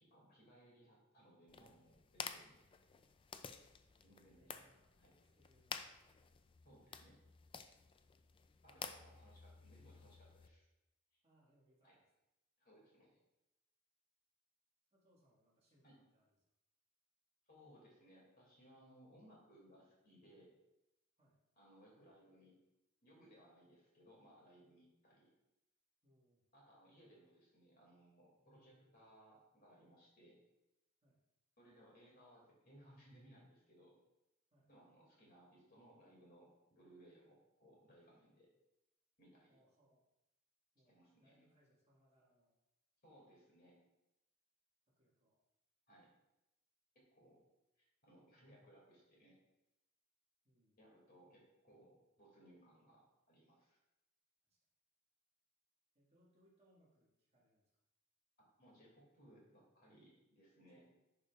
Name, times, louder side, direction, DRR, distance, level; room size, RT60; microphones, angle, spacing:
voice 1, 0.0-2.5 4.0-4.6 5.0-5.1 6.6-7.2 8.6-10.7 11.1-11.2 11.8-12.0 12.6-13.2 15.8-16.0 17.5-20.5 21.6-22.6 23.0-25.3 26.5-30.4 31.6-34.0 34.7-38.5 39.2-39.6 40.9-41.5 43.0-43.8 45.9-46.1 46.9-47.4 47.8-49.4 50.8-53.8 58.4-60.9, equal, 45° left, -3 dB, 2.4 m, -65 dB
sound 1, 1.5-10.5, left 6 dB, 25° left, 0.3 m, -52 dB
voice 2, 3.4-4.9 5.2-6.1 8.9-9.2 9.8-9.9 11.2-12.1 14.9-16.4 21.2-21.4 26.0-26.5 31.0-31.2 34.5-34.7 39.5-40.0 40.7-42.5 44.9-45.4 47.2-47.4 50.4-50.8 54.4-54.6 55.9-57.7 60.7-60.9, equal, 30° right, -5 dB, 1.8 m, -75 dB
10.5 x 4.8 x 2.4 m, 0.93 s
head